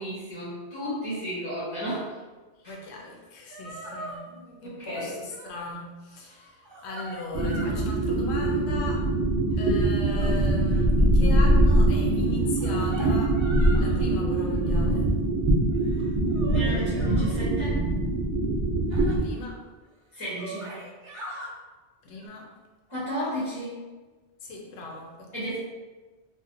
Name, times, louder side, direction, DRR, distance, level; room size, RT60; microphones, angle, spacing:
voice 1, 0.0-2.2 2.6-2.7 4.6-5.1 16.5-17.8 20.1-20.8 22.9-23.7 25.3-25.6, equal, 30° left, -10 dB, 0.7 m, -33 dB
voice 2, 2.6-9.1 9.6-13.5 13.8-15.1 19.2-19.6 22.0-22.5 24.4-25.6, left 2 dB, 75° left, 0 dB, 0.8 m, -38 dB
sound 1, 3.2-3.3 3.5-4.2 4.9-5.6 6.1-7.9 8.3-8.8 9.5-10.9 12.3-14.0 14.5-15.0 15.7-17.4 18.9-19.1 19.8-19.9 20.2-21.5 22.1-22.3, right 1 dB, 50° right, 0.3 m, -42 dB
sound 2, 7.3-19.2, right 1 dB, 70° right, 0.8 m, -23 dB
2.6 x 2.2 x 2.5 m, 1.3 s
omnidirectional pair, 1.2 m